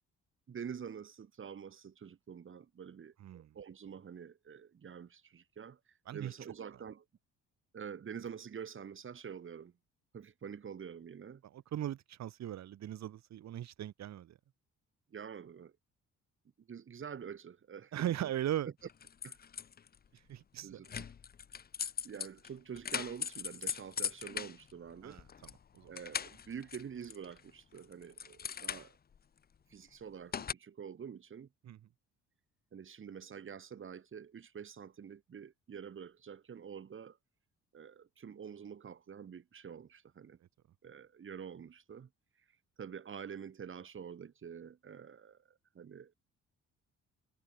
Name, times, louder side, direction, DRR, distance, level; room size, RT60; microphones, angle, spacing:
voice 1, 0.5-7.0 7.7-9.7 10.1-11.4 15.1-15.7 16.6-18.2 19.2-19.4 20.6-20.9 22.0-25.2 25.9-29.0 29.7-31.5 32.7-37.2 37.7-40.4 40.8-42.1 42.8-46.1, right 7 dB, 40° right, 1.6 m, -47 dB
voice 2, 3.2-3.5 6.1-6.3 11.5-14.4 17.9-18.7 20.3-21.1 25.0-25.9 31.6-31.8, right 11 dB, 65° right, 1.3 m, -39 dB
sound 1, 18.9-20.0 20.8-25.6 25.8-27.4 27.8-29.2 30.3-30.5, left 7 dB, 30° left, 0.6 m, -40 dB
cardioid pair, 90°, 30 cm